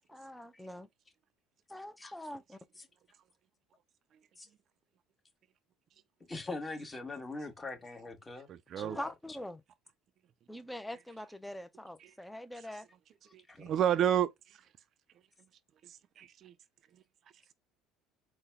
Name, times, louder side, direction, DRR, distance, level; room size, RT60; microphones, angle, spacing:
voice 1, 0.1-0.9 1.7-2.6 8.8-9.6 10.5-12.9, left 1 dB, 5° left, 0.6 m, -43 dB
voice 2, 6.3-8.5 8.8-9.1 13.5-13.7, left 3 dB, 20° left, 1.2 m, -42 dB
voice 3, 8.5-9.0 13.3-14.3 15.9-16.5, right 10 dB, 50° right, 0.4 m, -30 dB
3.9 x 2.2 x 3.3 m
supercardioid pair, 80°, 0 cm